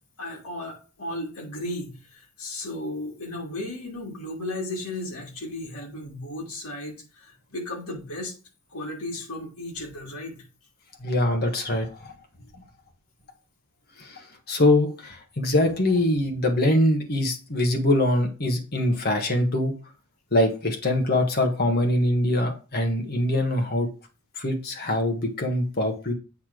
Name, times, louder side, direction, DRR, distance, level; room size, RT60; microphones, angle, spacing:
voice 1, 0.2-8.3 8.7-10.4 12.4-12.5, left 1 dB, 80° left, 2.6 m, -35 dB
voice 2, 11.0-12.1 14.0-19.7 20.3-23.9 24.3-26.1, left 1 dB, 45° left, 1.5 m, -23 dB
8.5 x 3.4 x 6.1 m
head